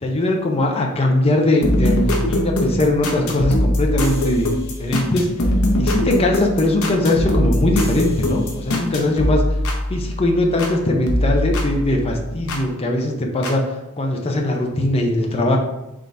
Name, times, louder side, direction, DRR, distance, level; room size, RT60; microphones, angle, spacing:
voice 1, 0.0-5.3 5.8-9.4 9.9-15.6, left 1 dB, 25° left, 1 dB, 0.6 m, -20 dB
sound 1, 1.6-10.8 11.1-12.6 13.4-13.5, left 1 dB, 70° left, 0.8 m, -22 dB
3.9 x 3.7 x 3.4 m, 0.90 s
head